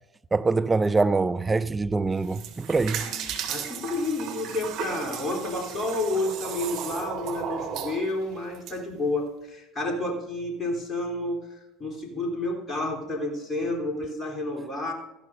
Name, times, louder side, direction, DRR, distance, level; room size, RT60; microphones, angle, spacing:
voice 1, 0.3-3.0, right 3 dB, 15° right, 0.4 m, -24 dB
sound 1, 2.1-8.7, right 8 dB, 50° right, 1.7 m, -35 dB
voice 2, 3.5-14.9, left 2 dB, 20° left, 3.4 m, -30 dB
17.0 x 13.5 x 2.6 m
figure-of-eight pair, 65°, 0 cm